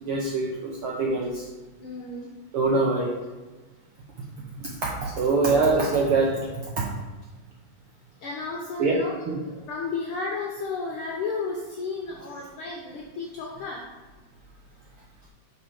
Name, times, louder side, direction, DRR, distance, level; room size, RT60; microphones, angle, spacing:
voice 1, 0.0-1.5 2.5-3.1 4.6-6.5 8.8-9.4, right 3 dB, 75° right, -2 dB, 1.3 m, -24 dB
voice 2, 1.8-2.3 8.2-9.2 9.4-13.9, left 4 dB, 75° left, -2 dB, 1.2 m, -33 dB
5.9 x 4.9 x 4.8 m, 1.2 s
omnidirectional pair, 3.4 m